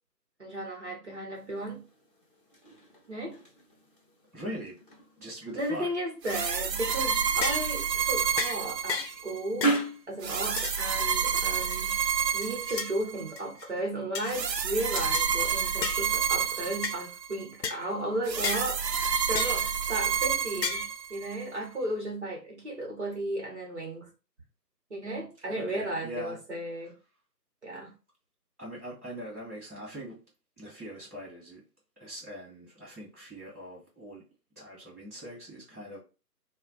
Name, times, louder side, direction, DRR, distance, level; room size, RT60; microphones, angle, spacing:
voice 1, 0.4-1.8 3.1-3.3 5.5-9.7 10.1-11.9 12.3-24.1 24.9-26.9 27.6-27.9, right 1 dB, 45° right, 0.8 m, -34 dB
sound 1, 1.3-10.1, right 2 dB, 35° left, 0.8 m, -38 dB
voice 2, 4.3-4.8 5.2-5.9 25.5-26.4 26.8-26.9 28.6-30.2 30.6-31.6 32.0-34.2 34.5-36.0, equal, 10° right, 0.9 m, -42 dB
sound 2, 6.2-9.4 10.2-13.3 14.3-17.4 18.3-21.4, right 7 dB, 75° right, 0.6 m, -29 dB
sound 3, 6.8-7.0 7.4-7.7 8.4-8.6 8.9-9.2 9.6-9.9 10.6-10.8 11.4-11.8 12.4-12.9 13.4-13.7 14.1-14.4 14.9-15.3 15.8-16.1 16.8-17.0 17.6-17.8 18.4-18.7 19.3-19.6 20.6-20.9, left 6 dB, 80° left, 0.7 m, -33 dB
2.2 x 2.1 x 3.8 m
figure-of-eight pair, 155°, 50 cm